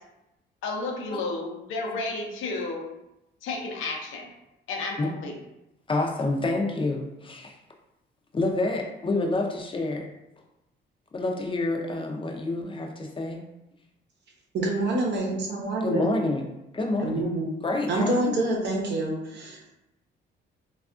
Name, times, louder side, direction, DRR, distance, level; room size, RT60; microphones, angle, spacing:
voice 1, 0.6-2.8 3.4-4.3 4.7-5.4, left 3 dB, 85° left, 0 dB, 0.7 m, -32 dB
voice 2, 5.9-7.6 8.3-10.1 11.1-13.4 15.8-16.5 16.7-17.3 17.6-18.4, left 2 dB, 25° left, 1 dB, 0.5 m, -28 dB
voice 3, 14.5-16.2 17.0-17.5 17.9-19.7, right 2 dB, 60° right, -1 dB, 0.8 m, -27 dB
3.3 x 2.3 x 2.4 m, 0.90 s
cardioid pair, 90°, 20 cm